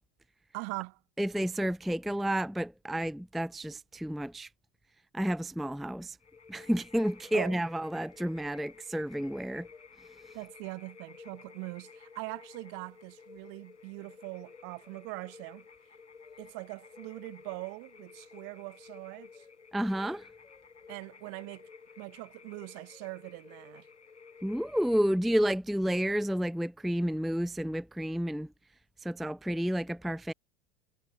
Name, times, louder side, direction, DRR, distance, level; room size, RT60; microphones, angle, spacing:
voice 1, 0.5-1.0 7.3-7.6 10.3-15.6 16.4-19.4 20.9-21.7 22.0-23.9, right 39 dB, 45° right, 1.6 m, -42 dB
voice 2, 1.2-4.5 5.1-6.2 6.5-9.7 19.7-20.2 24.4-28.5 29.0-30.3, equal, ahead, 0.6 m, -30 dB
sound 1, 6.2-25.0, left 5 dB, 80° left, 6.3 m, -53 dB
figure-of-eight pair, 80°, 34 cm